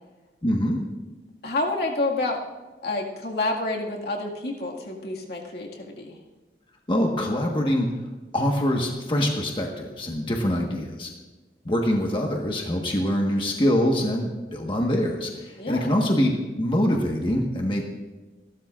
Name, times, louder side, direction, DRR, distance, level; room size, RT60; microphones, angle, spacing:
voice 1, 0.4-0.8 6.9-7.9 8.3-11.1 11.6-17.8, equal, 30° left, 0 dB, 1.4 m, -24 dB
voice 2, 1.4-2.4 2.8-6.2 15.6-15.9, left 2 dB, 60° left, -1 dB, 2.0 m, -28 dB
28.0 x 12.5 x 2.5 m, 1.2 s
head